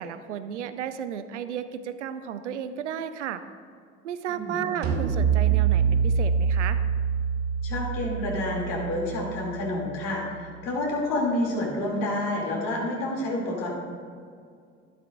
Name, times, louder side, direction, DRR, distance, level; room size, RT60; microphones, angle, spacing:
voice 1, 0.0-3.4 4.0-6.8, right 9 dB, 90° right, 11 dB, 0.6 m, -33 dB
voice 2, 4.3-4.6 7.6-13.7, left 1 dB, 65° left, -2 dB, 3.0 m, -29 dB
sound 1, 4.8-10.2, right 7 dB, 60° right, 1.2 m, -25 dB
12.5 x 11.5 x 2.6 m, 2.2 s
hypercardioid pair, 60°, 34 cm